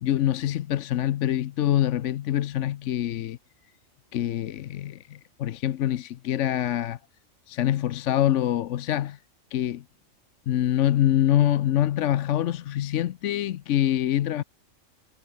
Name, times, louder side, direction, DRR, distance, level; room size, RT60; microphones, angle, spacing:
voice 1, 0.0-3.4 4.1-7.0 7.5-9.2 9.5-9.8 10.5-14.4, left 12 dB, 70° left, 1.0 m, -25 dB
omnidirectional pair, 1.3 m